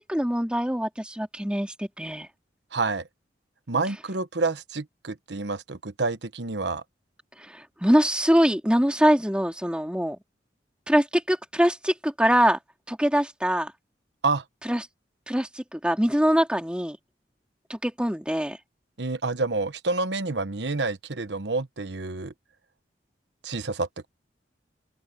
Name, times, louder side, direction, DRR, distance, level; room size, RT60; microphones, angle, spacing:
voice 1, 0.0-2.3 7.4-10.2 10.9-12.6 12.9-13.7 14.6-14.8 15.3-17.0 17.7-18.6, equal, 5° right, 2.5 m, -23 dB
voice 2, 2.7-3.0 3.7-6.8 14.2-14.4 19.0-22.3 23.4-24.1, right 3 dB, 75° right, 1.1 m, -28 dB
open air
head